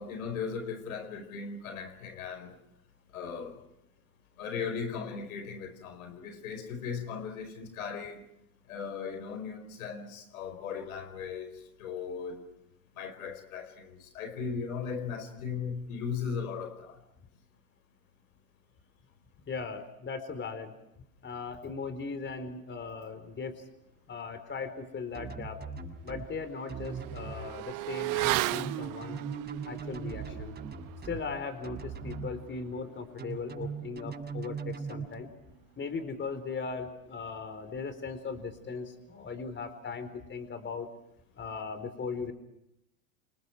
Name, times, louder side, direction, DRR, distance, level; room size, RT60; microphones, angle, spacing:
voice 1, 0.0-2.6 3.1-3.6 4.4-8.2 8.7-11.5 11.8-12.4 13.0-17.0, left 6 dB, 80° left, 8 dB, 5.0 m, -37 dB
voice 2, 19.5-20.7 21.2-23.5 24.1-25.6 26.0-29.2 29.7-30.6 31.0-35.3 35.8-40.9 41.4-42.3, left 4 dB, 25° left, 9 dB, 4.3 m, -38 dB
sound 1, 25.1-26.3 26.7-27.3 28.2-31.2 31.6-32.3 33.2-35.0, right 5 dB, 25° right, 6.2 m, -39 dB
Motorcycle / Accelerating revving vroom, 25.1-25.2 25.6-35.6 35.9-36.0, right 20 dB, 50° right, 1.0 m, -38 dB
29.0 x 28.5 x 4.8 m, 0.81 s
hypercardioid pair, 90°, 42 cm